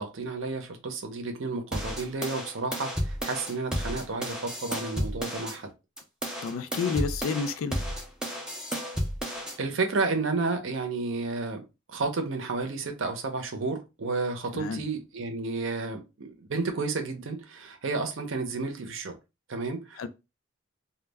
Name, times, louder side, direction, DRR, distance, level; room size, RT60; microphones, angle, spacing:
voice 1, 0.0-5.7 9.6-11.6 11.9-19.1 19.5-20.1, right 3 dB, 65° right, 0.6 m, -31 dB
sound 1, 1.7-5.6 6.0-9.6, equal, 5° right, 0.4 m, -33 dB
voice 2, 6.4-7.8 14.5-14.8 20.0-20.1, left 5 dB, 75° left, 0.4 m, -30 dB
2.2 x 2.0 x 3.3 m
head